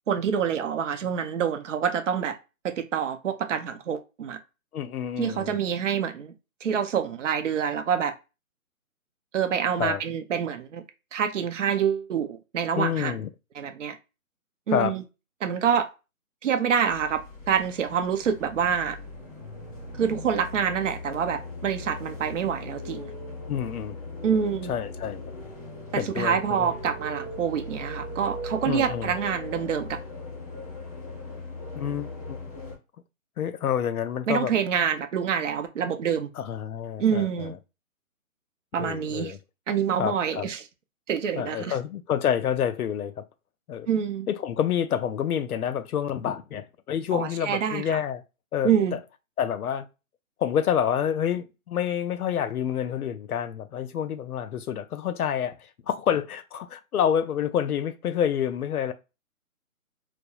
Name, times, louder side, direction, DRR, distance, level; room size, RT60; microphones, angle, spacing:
voice 1, 0.1-2.4 2.6-4.4 5.2-6.3 6.6-8.1 9.3-10.8 11.1-13.2 13.6-14.0 14.7-15.0 15.4-15.9 16.4-19.0 20.0-23.1 24.2-24.7 25.9-30.0 34.3-36.3 37.0-37.6 38.7-39.3 39.7-40.6 41.1-41.8 43.9-44.3 47.1-47.8 48.6-49.0, right 7 dB, 60° right, 0.5 m, -26 dB
voice 2, 4.7-5.6 9.8-10.0 12.7-13.3 14.7-14.9 23.5-24.0 24.7-25.2 26.0-26.7 28.7-29.1 31.8-32.4 33.4-34.5 36.4-37.5 38.8-39.4 40.0-40.5 41.3-43.2 43.7-43.9 44.3-48.2 48.5-49.0 49.4-49.9 50.4-55.6 55.9-58.9, left 9 dB, 85° left, 0.6 m, -28 dB
sound 1, 16.8-32.8, left 2 dB, 25° left, 0.5 m, -39 dB
2.3 x 2.0 x 2.7 m
hypercardioid pair, 165°, 43 cm